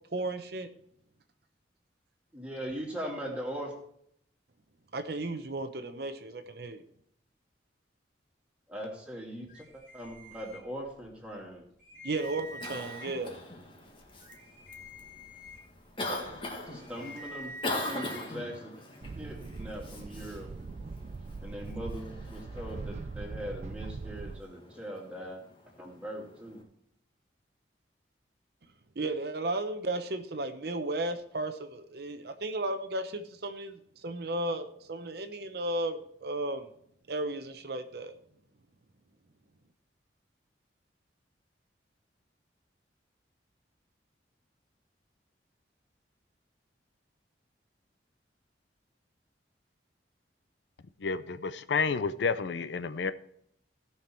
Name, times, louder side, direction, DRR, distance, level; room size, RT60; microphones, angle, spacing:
voice 1, 0.1-0.7 4.9-6.8 12.0-13.4 29.0-36.7 37.1-38.1, right 2 dB, 60° right, 8 dB, 0.8 m, -34 dB
voice 2, 2.3-3.7 8.7-11.6 16.7-17.5 17.8-18.7 19.2-20.5 21.4-25.4 25.8-26.6, equal, 5° right, -2 dB, 2.5 m, -40 dB
sound 1, 9.5-11.1 11.5-11.6 11.8-13.3 13.9-18.3, right 1 dB, 45° left, 3.3 m, -47 dB
Cough, 12.1-26.6, left 2 dB, 30° left, 1.6 m, -42 dB
sound 2, 19.0-24.4, right 4 dB, 35° right, 0.3 m, -41 dB
voice 3, 51.0-53.1, left 5 dB, 70° left, 13 dB, 0.5 m, -30 dB
16.5 x 5.8 x 4.5 m, 0.68 s
head